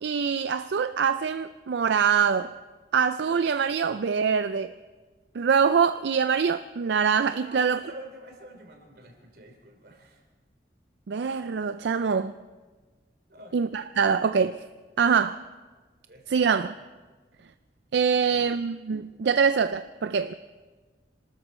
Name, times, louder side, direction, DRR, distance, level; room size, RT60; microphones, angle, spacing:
voice 1, 0.0-2.5 2.9-4.7 5.3-7.8 11.1-12.3 13.5-14.6 15.0-15.4 16.3-16.7 17.9-20.3, right 6 dB, 80° right, 0.4 m, -24 dB
voice 2, 7.4-10.2 13.3-13.5 16.1-16.6 18.2-18.6, right 1 dB, 60° right, 3.2 m, -47 dB
26.0 x 13.0 x 4.3 m
head